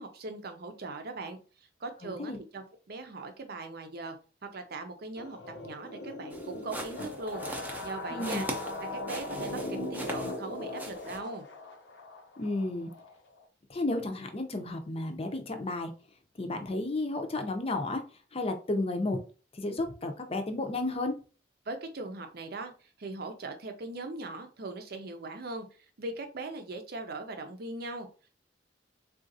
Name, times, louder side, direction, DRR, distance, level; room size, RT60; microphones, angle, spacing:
voice 1, 0.0-1.4 1.8-4.2 4.4-5.4 5.6-7.5 7.8-8.5 8.8-11.4 21.7-25.7 26.0-28.1, right 2 dB, 60° right, 6 dB, 0.6 m, -40 dB
voice 2, 2.0-2.4 8.1-8.4 12.4-12.9 13.7-15.9 16.4-18.0 18.3-19.2 19.5-21.1, left 2 dB, 35° left, 6 dB, 0.6 m, -32 dB
sound 1, 5.2-13.4, left 2 dB, 75° left, 0.7 m, -39 dB
sound 2, 6.3-10.5 10.8-11.2, right 1 dB, 10° right, 0.6 m, -41 dB
3.8 x 2.4 x 2.6 m, 0.36 s
head